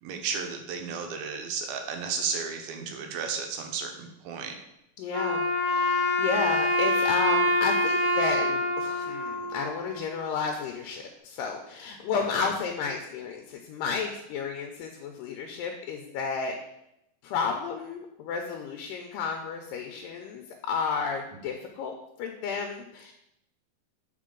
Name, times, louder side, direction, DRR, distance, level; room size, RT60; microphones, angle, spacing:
voice 1, 0.0-4.6 12.3-12.5, right 6 dB, 90° right, 4 dB, 2.6 m, -33 dB
voice 2, 5.0-16.6 17.2-21.9 22.2-23.1, left 5 dB, 80° left, 3 dB, 2.1 m, -32 dB
Wind instrument woodwind instrument, 5.1-10.3, left 1 dB, 25° right, 0.3 m, -26 dB
7.4 x 4.5 x 3.7 m, 0.84 s
omnidirectional pair, 4.1 m